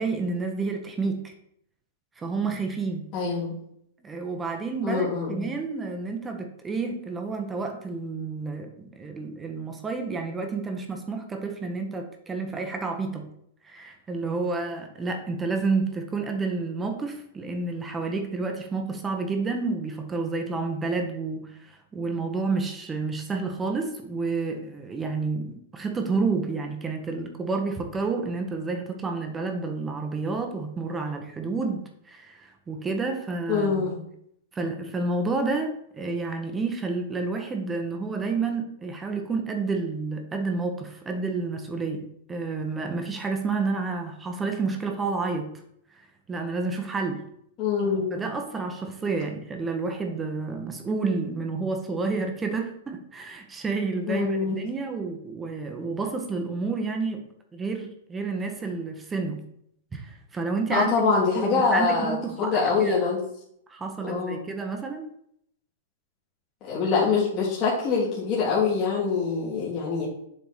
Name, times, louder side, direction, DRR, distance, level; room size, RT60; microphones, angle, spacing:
voice 1, 0.0-1.3 2.2-3.1 4.0-13.3 13.6-33.9 34.5-45.5 46.3-47.2 48.1-57.2 57.5-59.5 59.9-60.9 61.3-63.0 63.7-65.1, right 4 dB, 15° right, 4 dB, 0.9 m, -30 dB
voice 2, 3.1-3.5 4.8-5.5 33.5-34.0 47.6-48.3 54.1-54.7 60.7-63.2 64.0-64.4 66.6-70.0, left 5 dB, 35° left, -6 dB, 1.7 m, -24 dB
7.0 x 3.6 x 4.0 m, 0.72 s
hypercardioid pair, 135°, 0 cm